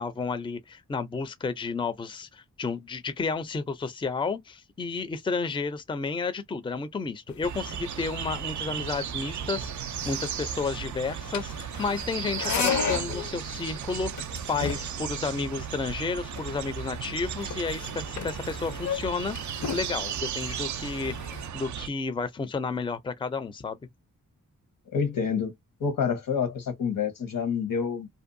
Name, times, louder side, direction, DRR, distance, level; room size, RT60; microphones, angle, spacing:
voice 1, 0.0-19.4 19.7-21.1 21.5-23.8, left 4 dB, 15° left, 0.4 m, -32 dB
sound 1, 7.3-21.5, left 7 dB, 60° left, 0.6 m, -36 dB
sound 2, 7.4-21.9, right 9 dB, 60° right, 0.5 m, -35 dB
voice 2, 24.9-25.5 25.8-28.1, left 6 dB, 75° left, 1.1 m, -28 dB
2.6 x 2.2 x 2.6 m
cardioid pair, 65°, 33 cm